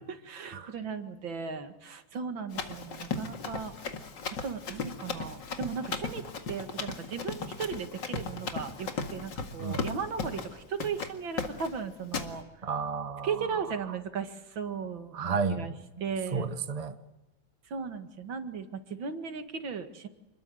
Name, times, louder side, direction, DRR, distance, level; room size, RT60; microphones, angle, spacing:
voice 1, 0.1-3.7 4.4-12.4 13.2-15.7 16.0-16.5 17.7-20.1, right 6 dB, 75° right, 2.6 m, -36 dB
Run, 2.5-10.5 10.8-11.1 11.4-11.7 12.1-12.3, left 5 dB, 65° left, 2.7 m, -36 dB
voice 2, 12.6-13.3 15.1-15.8 16.3-16.9, right 5 dB, 25° right, 1.0 m, -32 dB
27.5 x 21.5 x 7.8 m
omnidirectional pair, 2.1 m